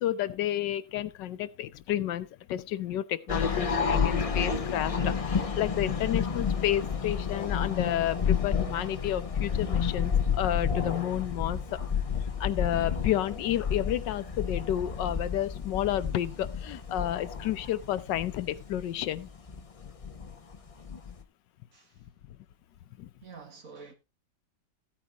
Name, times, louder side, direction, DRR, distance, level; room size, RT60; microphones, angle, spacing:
voice 1, 0.0-11.6 12.4-19.3, left 12 dB, 85° left, 1.4 m, -31 dB
sound 1, 3.3-21.2, left 6 dB, 40° left, 0.5 m, -30 dB
voice 2, 23.2-23.9, right 5 dB, 50° right, 2.1 m, -48 dB
15.0 x 8.8 x 2.8 m
omnidirectional pair, 1.9 m